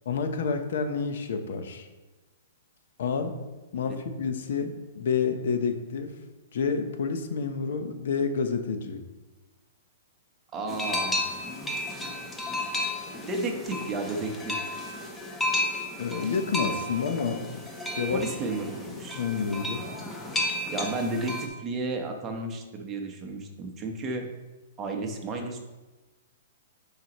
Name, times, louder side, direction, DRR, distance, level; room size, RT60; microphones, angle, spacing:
voice 1, 0.0-1.9 3.0-3.3 3.7-6.2 6.5-9.0 16.0-17.6 18.0-18.2 18.9-19.8, left 5 dB, 65° left, 7 dB, 0.9 m, -29 dB
voice 2, 10.5-11.3 13.3-14.8 18.1-19.2 20.7-24.3 24.8-25.6, right 2 dB, 20° right, 2 dB, 1.0 m, -33 dB
sound 1, 10.7-21.5, left 1 dB, 10° left, 1.0 m, -33 dB
9.1 x 5.0 x 3.0 m, 1.1 s
hypercardioid pair, 150°, 0 cm